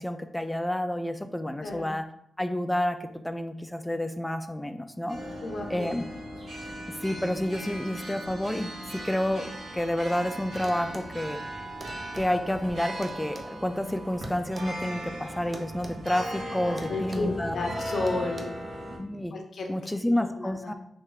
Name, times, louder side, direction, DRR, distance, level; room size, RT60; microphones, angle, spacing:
voice 1, 0.0-2.0 2.4-3.0 3.2-5.2 5.7-6.0 7.0-11.4 12.1-17.7 19.0-19.3 19.7-20.7, left 1 dB, 10° left, 8 dB, 0.4 m, -29 dB
sound 1, 5.1-19.0, right 1 dB, 70° right, 1.2 m, -38 dB
voice 2, 5.4-5.9 16.6-18.5 19.3-19.7 20.4-20.7, left 3 dB, 70° left, 2 dB, 0.7 m, -32 dB
sound 2, 10.6-11.1 11.8-12.3 13.0-14.7 15.5-16.0 16.2-16.4 16.8-17.3 18.1-18.4, right 2 dB, 35° right, 0.6 m, -45 dB
3.5 x 2.6 x 3.3 m, 0.72 s
supercardioid pair, 45°, 0 cm